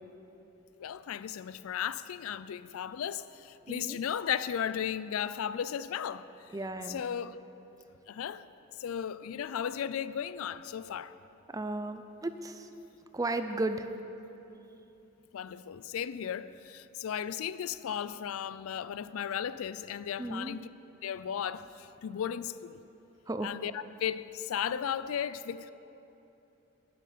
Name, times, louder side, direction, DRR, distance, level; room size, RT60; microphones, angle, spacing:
voice 1, 0.8-6.3 6.9-7.4 8.1-8.4 8.8-11.1 15.3-20.7 21.0-22.8 23.4-25.7, left 8 dB, 80° left, 0.4 m, -35 dB
voice 2, 3.7-4.0 6.5-7.0 11.5-12.7 13.1-13.9 20.2-20.6 23.3-23.5, right 2 dB, 15° right, 0.4 m, -34 dB
11.0 x 7.4 x 8.5 m
head